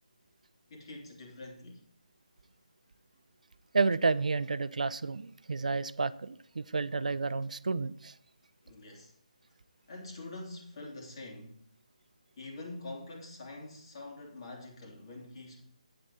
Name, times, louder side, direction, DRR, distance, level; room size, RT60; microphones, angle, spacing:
voice 1, 0.7-1.8 8.6-9.1 9.9-11.6 12.4-15.7, left 2 dB, 40° left, 3.0 m, -45 dB
voice 2, 3.7-8.1, right 4 dB, 75° right, 0.5 m, -30 dB
8.9 x 8.7 x 4.1 m
figure-of-eight pair, 160°, 4 cm